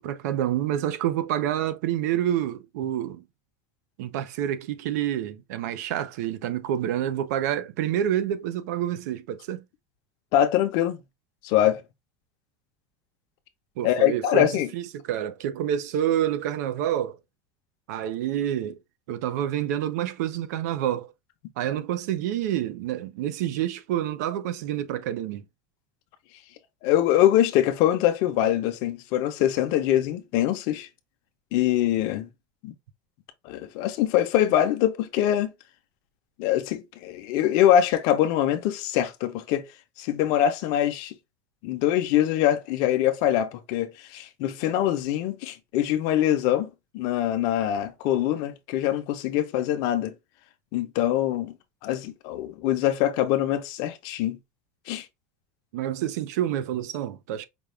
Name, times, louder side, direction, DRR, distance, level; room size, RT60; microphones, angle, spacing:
voice 1, 0.0-3.2 4.0-9.6 13.8-17.2 17.9-18.8 19.1-21.1 21.6-25.4 55.7-57.4, right 11 dB, 85° right, 0.7 m, -28 dB
voice 2, 10.3-11.0 11.4-11.8 13.8-14.7 26.8-30.9 31.5-32.3 32.6-32.7 33.4-35.5 36.4-39.6 40.0-41.1 41.6-50.1 50.7-51.5 51.8-54.4 54.9-55.1, left 11 dB, 50° left, 0.7 m, -23 dB
5.2 x 2.4 x 3.2 m
cardioid pair, 175°, 9 cm